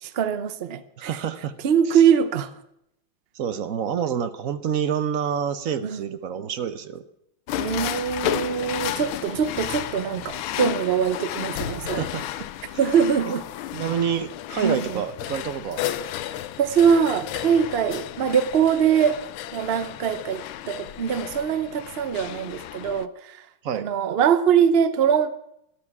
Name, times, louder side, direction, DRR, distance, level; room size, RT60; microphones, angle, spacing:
voice 1, 0.0-1.1 1.6-2.5 5.8-6.0 7.6-12.1 12.8-13.4 14.6-15.0 16.6-19.2 19.5-20.4 20.7-23.4 23.7-25.4, right 7 dB, 90° right, 13 dB, 0.5 m, -22 dB
voice 2, 1.0-1.5 1.9-2.0 3.3-7.0 11.8-12.5 12.7-12.8 13.3-13.4 13.7-15.8 23.6-23.9, right 8 dB, 55° right, 12 dB, 1.0 m, -28 dB
sound 1, 7.5-23.1, left 13 dB, 85° left, 1.5 m, -33 dB
13.0 x 12.0 x 6.0 m, 0.78 s
omnidirectional pair, 2.2 m